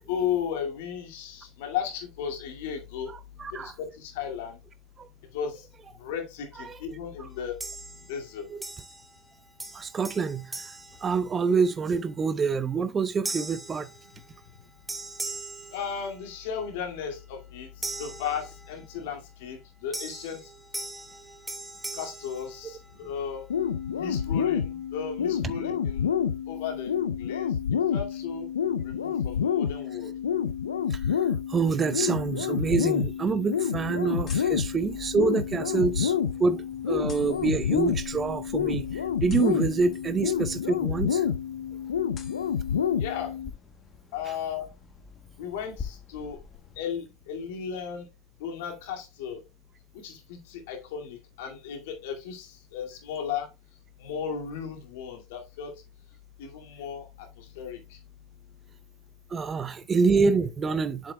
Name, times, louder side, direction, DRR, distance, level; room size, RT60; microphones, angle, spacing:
voice 1, 0.1-3.1 3.5-4.6 5.3-5.6 6.0-7.6 8.1-8.5 15.7-17.7 18.0-20.4 21.9-23.4 23.9-26.0 26.5-28.5 28.8-30.1 43.0-43.3 44.1-44.7 45.4-46.4 46.8-48.0 48.4-49.4 50.0-53.5 54.0-55.7 56.4-57.1 57.4-57.8, left 7 dB, 65° left, 2.1 m, -35 dB
voice 2, 3.4-3.7 5.0-5.1 6.6-6.8 8.5-8.6 9.7-10.6 11.0-13.9 22.6-22.7 25.4-25.5 30.9-31.0 31.5-36.1 36.4-41.3 59.3-61.1, right 5 dB, 25° right, 0.6 m, -26 dB
sound 1, 7.6-8.3 8.6-9.3 9.6-11.8 12.3-12.5 13.2-14.6 14.9-16.5 17.8-19.0 19.9-23.2, right 2 dB, 10° right, 1.1 m, -40 dB
sound 2, 23.5-43.5, left 8 dB, 80° left, 0.5 m, -28 dB
sound 3, 34.0-46.8, left 6 dB, 35° left, 1.5 m, -47 dB
7.4 x 7.4 x 2.2 m
hypercardioid pair, 80°, 0 cm